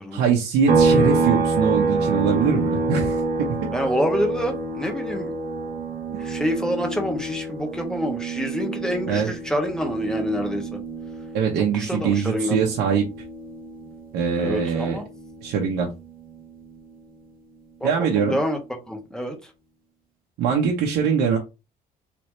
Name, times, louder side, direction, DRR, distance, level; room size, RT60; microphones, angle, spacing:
voice 1, 0.1-3.7 9.1-9.3 11.3-13.0 14.1-15.0 15.4-15.9 17.8-18.4 20.4-21.4, right 6 dB, 85° right, -1 dB, 0.9 m, -22 dB
sound 1, 0.7-14.2 14.6-16.8, right 3 dB, 55° right, 1.1 m, -27 dB
voice 2, 3.7-5.3 6.2-10.8 11.5-12.6 14.4-15.0 17.8-18.6 18.9-19.5, equal, 5° left, 3 dB, 1.1 m, -27 dB
3.4 x 2.9 x 3.2 m, 0.27 s
cardioid pair, 110°, 17 cm